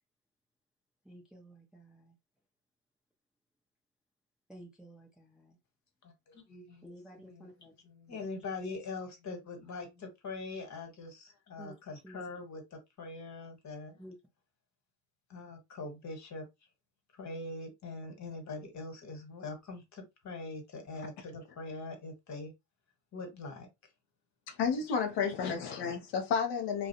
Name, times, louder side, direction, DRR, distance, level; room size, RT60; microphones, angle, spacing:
voice 1, 1.0-2.1 4.5-5.6 6.8-7.7 8.7-8.8 11.6-11.8 12.0-12.2 14.0-14.1, right 1 dB, ahead, 0.5 m, -52 dB
voice 2, 6.0-14.0 15.3-16.5 17.1-22.5 23.1-23.7 25.4-25.5, left 3 dB, 35° left, 1.2 m, -43 dB
voice 3, 24.5-26.9, left 6 dB, 60° left, 0.8 m, -31 dB
2.3 x 2.0 x 2.8 m
hypercardioid pair, 70°, 47 cm